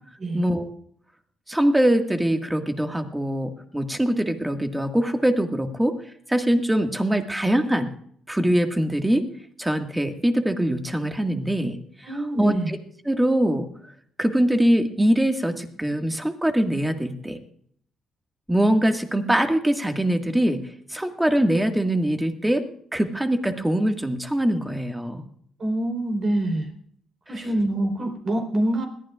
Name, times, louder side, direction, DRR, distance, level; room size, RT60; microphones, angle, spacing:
voice 1, 0.3-0.7 1.5-6.0 6.3-7.9 8.3-9.3 9.6-12.8 13.1-13.7 14.2-17.4 18.5-20.6 20.9-22.6 22.9-25.2 27.3-27.4, right 1 dB, 10° right, 5 dB, 1.8 m, -23 dB
voice 2, 12.0-12.7 25.6-26.7 27.3-28.8, right 1 dB, 45° right, 4 dB, 3.8 m, -25 dB
21.0 x 15.0 x 2.4 m, 0.64 s
cardioid pair, 90°, 0 cm